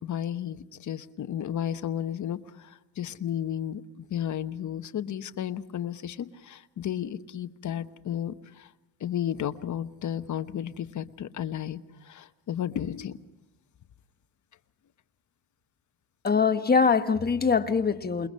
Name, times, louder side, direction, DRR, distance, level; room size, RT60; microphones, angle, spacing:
voice 1, 0.0-8.7 9.0-13.2, left 10 dB, 50° left, 1.1 m, -33 dB
voice 2, 16.2-18.3, left 5 dB, 25° left, 1.3 m, -23 dB
28.0 x 21.0 x 5.5 m
cardioid pair, 105°, 38 cm